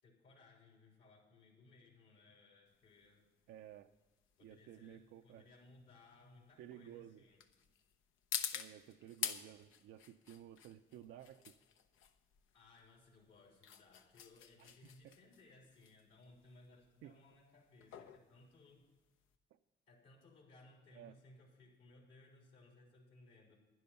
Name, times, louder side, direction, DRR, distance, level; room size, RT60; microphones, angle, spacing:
voice 1, 0.0-3.3 4.4-7.4 12.5-18.8 19.9-23.6, left 2 dB, 70° left, -2 dB, 3.8 m, -63 dB
sound 1, 2.7-19.4, left 8 dB, 90° left, 0.8 m, -48 dB
voice 2, 3.5-3.9 4.4-5.5 6.6-7.2 8.5-11.6 14.6-14.7 15.0-15.1 17.0-17.1 20.9-21.2, right 11 dB, 85° right, 6 dB, 0.5 m, -54 dB
11.0 x 10.5 x 5.6 m, 1.2 s
cardioid pair, 90°, 20 cm